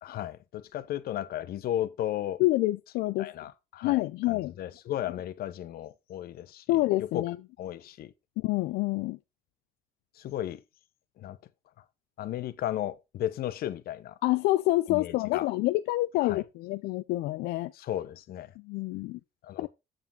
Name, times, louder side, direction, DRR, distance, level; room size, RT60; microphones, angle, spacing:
voice 1, 0.0-2.4 3.2-7.2 7.6-8.1 10.2-10.6 11.2-11.4 12.2-14.2 14.9-15.5 16.2-16.4 17.7-18.5 19.4-19.7, left 12 dB, 65° left, 0.8 m, -35 dB
voice 2, 2.4-3.3 3.8-4.5 6.7-7.4 8.4-9.2 14.2-17.7 18.6-19.2 19.6-19.7, left 18 dB, 85° left, 0.4 m, -27 dB
7.6 x 7.1 x 3.7 m
cardioid pair, 110°, 17 cm